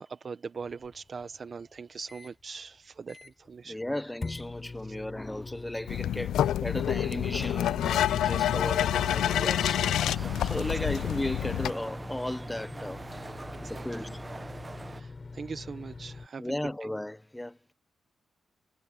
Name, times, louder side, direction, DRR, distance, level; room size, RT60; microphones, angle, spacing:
voice 1, 0.0-3.8 4.8-4.9 10.8-10.9 13.6-14.1 14.9-16.4 16.8-16.9, right 5 dB, 50° right, 1.1 m, -41 dB
sound 1, 0.6-2.3 2.8-2.9 3.1-3.5 4.2-16.3, left 3 dB, 35° left, 4.5 m, -44 dB
voice 2, 3.6-13.0 13.6-14.2 16.4-17.7, left 1 dB, 10° left, 1.0 m, -35 dB
sound 2, 5.9-11.7, left 11 dB, 85° left, 0.5 m, -28 dB
sound 3, 8.2-15.0, right 2 dB, 25° right, 1.1 m, -42 dB
supercardioid pair, 55°, 0 cm